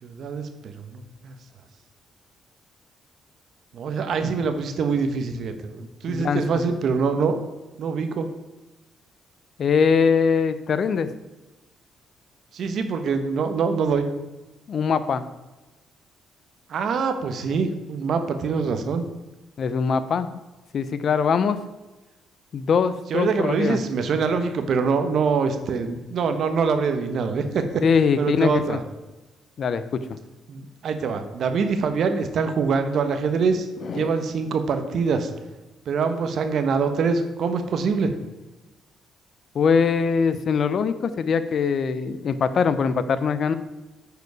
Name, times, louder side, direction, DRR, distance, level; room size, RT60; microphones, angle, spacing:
voice 1, 0.0-1.3 3.7-7.4 7.8-8.3 12.5-14.1 16.7-19.1 23.1-27.6 28.2-28.8 30.5-35.3 35.9-38.1, right 5 dB, 65° right, 8 dB, 1.0 m, -24 dB
voice 2, 6.1-6.7 9.6-11.1 14.7-15.2 19.6-20.3 20.7-21.6 22.5-23.8 27.8-28.8 29.6-30.1 33.8-34.1 39.5-43.5, left 6 dB, 55° left, 12 dB, 0.6 m, -22 dB
9.3 x 5.1 x 4.7 m, 1.1 s
cardioid pair, 90°, 0 cm